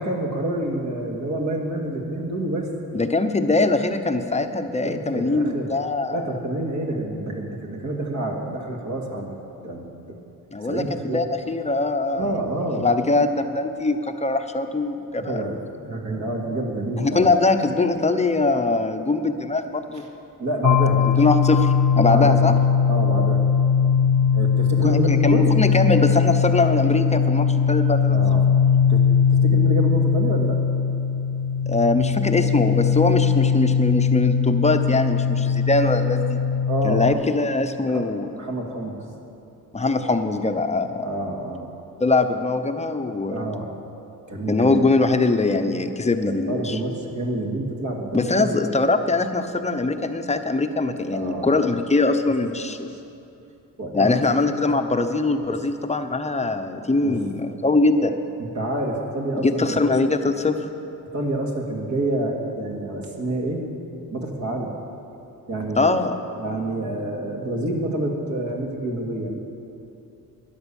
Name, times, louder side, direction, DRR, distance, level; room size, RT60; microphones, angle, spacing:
voice 1, 0.0-2.7 4.8-5.7 6.1-9.3 9.6-10.2 10.6-11.2 12.1-12.9 15.2-17.3 19.9-20.1 20.4-21.0 22.0-22.4 22.9-23.5 24.3-25.5 28.1-28.6 28.9-30.6 36.6-37.3 37.9-38.1 38.4-39.0 41.0-41.7 43.3-43.7 44.3-44.8 46.2-48.6 51.1-51.6 52.9-53.0 53.8-54.3 55.5-55.6 57.0-57.2 58.4-59.8 61.1-63.6 64.1-64.7 65.5-66.0 66.4-69.4, right 1 dB, 50° right, 0 dB, 2.5 m, -28 dB
voice 2, 2.9-6.3 10.5-12.3 12.8-15.4 17.0-20.0 21.0-22.5 24.8-28.2 31.7-36.4 36.8-38.3 39.7-41.1 42.0-43.4 44.5-46.8 48.1-52.9 53.9-58.2 59.4-60.7 65.8-66.2, left 3 dB, 20° left, 7 dB, 0.9 m, -22 dB
sound 1, 20.6-37.1, left 6 dB, 55° left, 0.6 m, -20 dB
13.0 x 10.5 x 7.2 m, 2.8 s
cardioid pair, 95°, 37 cm